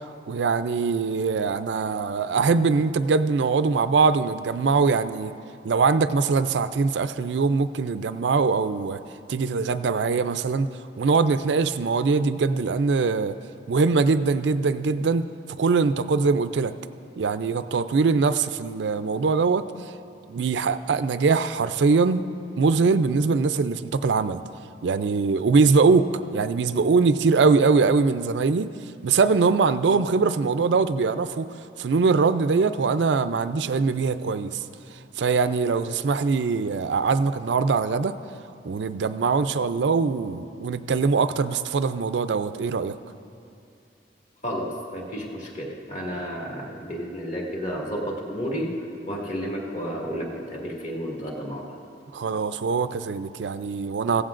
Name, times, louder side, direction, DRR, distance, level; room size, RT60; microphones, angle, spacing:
voice 1, 0.3-5.3 5.6-9.0 9.3-10.7 11.0-13.3 13.7-15.3 15.6-16.7 17.2-19.6 20.3-22.2 22.6-24.4 24.8-28.7 29.0-31.5 31.8-34.5 35.2-38.1 38.6-43.0 52.1-54.2, right 4 dB, 85° right, 12 dB, 0.4 m, -22 dB
voice 2, 44.4-48.7 49.1-51.6, equal, 45° left, -3 dB, 2.0 m, -31 dB
16.0 x 15.0 x 2.5 m, 2.5 s
head